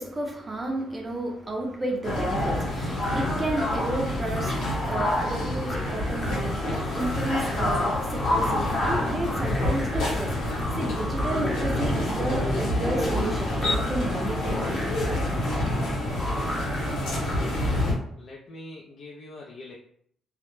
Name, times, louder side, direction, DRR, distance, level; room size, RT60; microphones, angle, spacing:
voice 1, 0.0-14.7, right 1 dB, 25° right, 0 dB, 0.5 m, -32 dB
sound 1, 2.0-17.9, left 1 dB, 80° left, 0.9 m, -27 dB
sound 2, 2.9-17.1, left 1 dB, 15° left, 0.8 m, -37 dB
voice 2, 17.7-19.8, left 2 dB, 60° left, -1 dB, 0.4 m, -44 dB
2.1 x 2.0 x 3.0 m, 0.66 s
cardioid pair, 90°, 0 cm